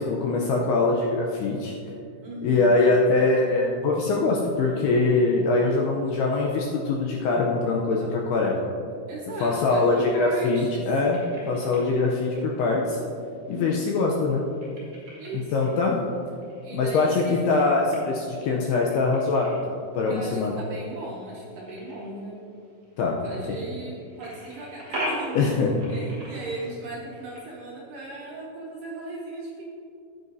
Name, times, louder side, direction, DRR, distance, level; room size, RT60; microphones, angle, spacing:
voice 1, 0.0-1.8 2.4-8.7 9.4-11.2 11.5-13.0 13.5-14.4 15.5-16.0 16.7-20.6 23.0-23.2 25.3-25.9, left 3 dB, 80° left, -1 dB, 2.4 m, -23 dB
voice 2, 2.2-2.8 9.1-10.9 13.5-14.0 15.2-15.7 16.6-17.5 20.0-22.4 23.2-29.7, right 2 dB, 65° right, -5 dB, 2.3 m, -37 dB
sound 1, 10.6-27.5, equal, 40° right, 2.5 m, -42 dB
14.5 x 9.6 x 2.7 m, 2.5 s
omnidirectional pair, 5.3 m